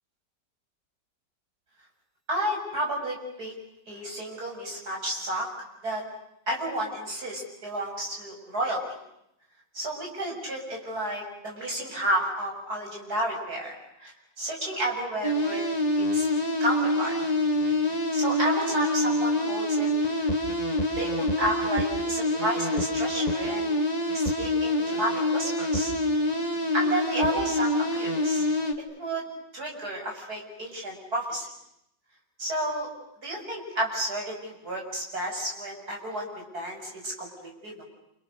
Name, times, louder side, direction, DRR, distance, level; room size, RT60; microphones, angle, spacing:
voice 1, 2.3-3.5 3.9-5.5 5.8-6.0 6.5-8.8 9.7-14.1 14.4-15.7 16.0-16.3 16.6-17.1 18.1-19.9 20.2-20.4 21.0-23.7 24.1-25.9 26.7-28.4 29.0-29.3 29.5-31.5 32.4-32.9 33.2-36.3 36.5-37.8, right 1 dB, 55° right, -1 dB, 7.8 m, -31 dB
sound 1, 15.2-28.7, left 1 dB, 20° left, 2.1 m, -26 dB
29.5 x 28.0 x 6.8 m, 0.80 s
omnidirectional pair, 1.9 m